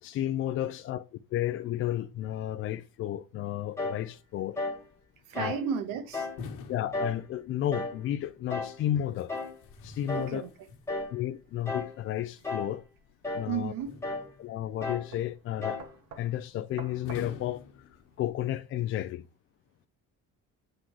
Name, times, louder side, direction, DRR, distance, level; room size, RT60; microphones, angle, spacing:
voice 1, 0.0-4.6 5.3-5.6 6.7-9.3 9.8-10.4 11.1-12.8 13.3-13.7 14.4-15.8 16.2-17.9 18.2-19.2, left 12 dB, 40° left, 0.4 m, -32 dB
sound 1, 3.8-4.1 4.6-4.8 5.4-5.6 6.1-6.4 6.9-7.2 7.7-8.0 8.5-8.8 9.3-9.6 10.1-10.4 10.9-11.2 11.7-12.0 12.4-12.8 13.2-13.5 14.0-14.3 14.8-15.1 15.6-15.9, left 2 dB, 10° left, 1.3 m, -34 dB
voice 2, 5.3-6.3 10.1-10.5 13.5-13.9, right 7 dB, 90° right, 1.3 m, -33 dB
sound 2, 6.4-7.8 9.1-11.2 13.9-14.7 17.0-18.5, left 6 dB, 70° left, 1.4 m, -46 dB
sound 3, 12.6-18.3, right 5 dB, 60° right, 1.3 m, -51 dB
7.7 x 3.9 x 4.5 m
cardioid pair, 165°, 32 cm